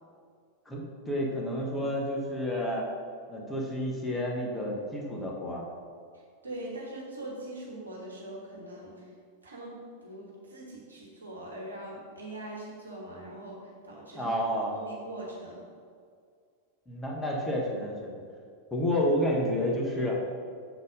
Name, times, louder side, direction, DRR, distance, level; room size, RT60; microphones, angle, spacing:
voice 1, 0.7-2.8 3.3-5.6 14.1-14.8 16.9-18.2 18.7-20.2, equal, 10° left, -2 dB, 1.1 m, -30 dB
voice 2, 6.4-9.1 9.4-14.3 14.7-15.7, right 1 dB, 75° right, -3 dB, 1.2 m, -42 dB
7.0 x 4.1 x 5.1 m, 2.1 s
figure-of-eight pair, 90°, 0 cm